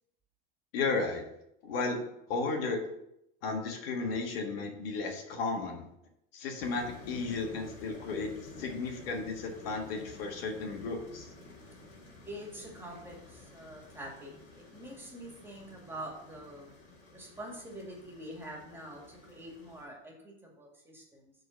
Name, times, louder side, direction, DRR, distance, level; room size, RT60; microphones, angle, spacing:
voice 1, 0.7-1.2 1.6-2.0 2.3-2.8 3.4-5.8 6.3-11.3, left 3 dB, 85° left, 3 dB, 1.7 m, -34 dB
sound 1, 6.6-19.8, left 2 dB, 55° left, 3.4 m, -52 dB
voice 2, 12.2-16.7 17.1-21.3, right 1 dB, 10° right, -1 dB, 2.1 m, -45 dB
7.7 x 4.0 x 6.3 m, 0.79 s
supercardioid pair, 130°, 29 cm